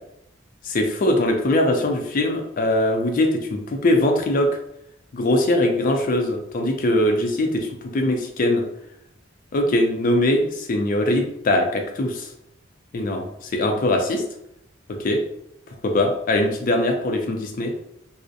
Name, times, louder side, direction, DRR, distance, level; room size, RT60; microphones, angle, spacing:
voice 1, 0.6-4.5 5.1-8.6 9.5-12.3 12.9-14.2 14.9-15.2 15.8-17.7, left 1 dB, 45° left, 4 dB, 0.4 m, -21 dB
2.5 x 2.0 x 2.5 m, 0.78 s
head